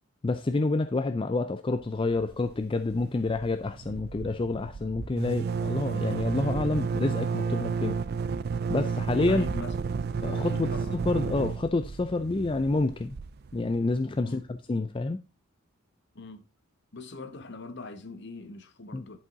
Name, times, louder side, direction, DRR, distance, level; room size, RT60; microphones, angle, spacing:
voice 1, 0.2-8.0 8.7-9.5 10.2-10.7 11.1-13.2 13.5-15.2 18.9-19.0, left 3 dB, 25° left, 0.4 m, -28 dB
sound 1, 2.1-2.6 2.9-3.0 3.3-13.9, right 5 dB, 45° right, 0.4 m, -31 dB
voice 2, 9.3-9.7 10.1-11.0 14.2-14.5 16.1-16.5 16.9-19.2, left 3 dB, 50° left, 1.0 m, -42 dB
11.0 x 5.5 x 3.6 m
head